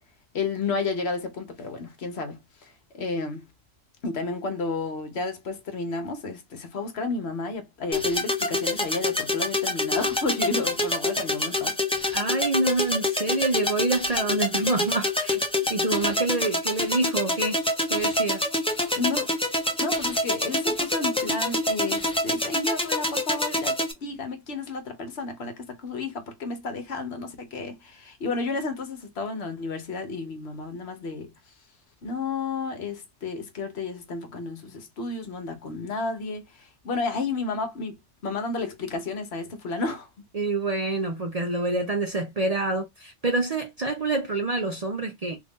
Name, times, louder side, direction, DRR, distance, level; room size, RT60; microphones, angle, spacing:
voice 1, 0.3-3.5 4.0-11.8 18.9-19.3 19.8-31.3 32.0-37.9 38.2-40.1, left 3 dB, 65° left, 1.1 m, -31 dB
sound 1, 7.9-23.9, left 1 dB, 5° left, 0.5 m, -26 dB
voice 2, 12.1-15.4 15.7-17.6 17.9-18.4 40.3-45.4, right 2 dB, 45° right, 0.6 m, -27 dB
3.2 x 2.6 x 3.5 m
omnidirectional pair, 1.2 m